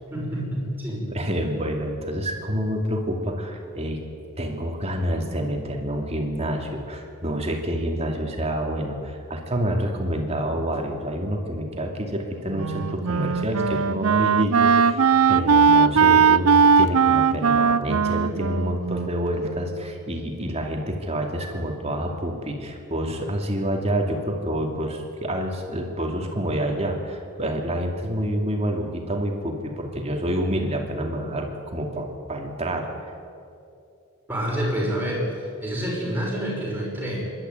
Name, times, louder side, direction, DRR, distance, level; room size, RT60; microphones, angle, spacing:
voice 1, 0.1-1.0 34.3-37.2, equal, 10° right, -4 dB, 6.0 m, -28 dB
voice 2, 1.1-4.0 4.4-15.0 15.3-32.9, equal, 30° right, 2 dB, 2.6 m, -28 dB
Wind instrument woodwind instrument, 12.5-19.7, right 6 dB, 85° right, 0.5 m, -19 dB
25.5 x 12.0 x 9.3 m, 2.5 s
head